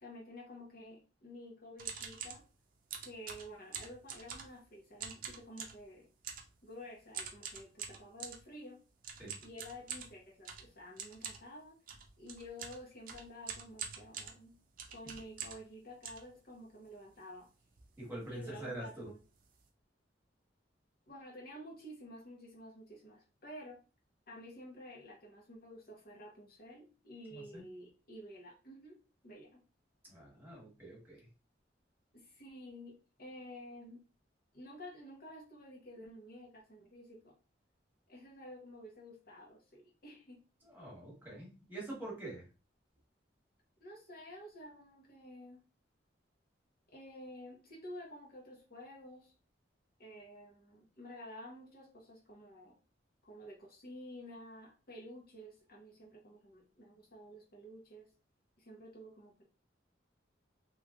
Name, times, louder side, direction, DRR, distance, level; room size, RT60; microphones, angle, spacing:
voice 1, 0.0-2.5 3.0-6.1 6.6-8.8 9.4-11.8 12.2-14.6 14.9-17.5 18.3-19.2 21.1-23.8 24.3-29.6 32.1-34.1 34.5-37.4 38.1-40.4 43.8-45.6 46.9-49.3 50.0-52.8 53.2-58.1 58.6-59.4, equal, 55° left, 0.9 m, -51 dB
sound 1, 1.8-2.4 2.9-4.6 5.0-5.8 6.2-6.5 7.1-8.4 9.0-15.7 16.0-16.9 17.4-17.5 17.6-17.9 18.2-18.4 19.0-19.1 19.3-19.6, right 6 dB, 50° right, 0.6 m, -45 dB
voice 2, 18.0-19.1 27.3-27.6 30.0-31.3 40.6-42.5, right 1 dB, 10° right, 1.3 m, -45 dB
3.1 x 3.1 x 2.4 m
head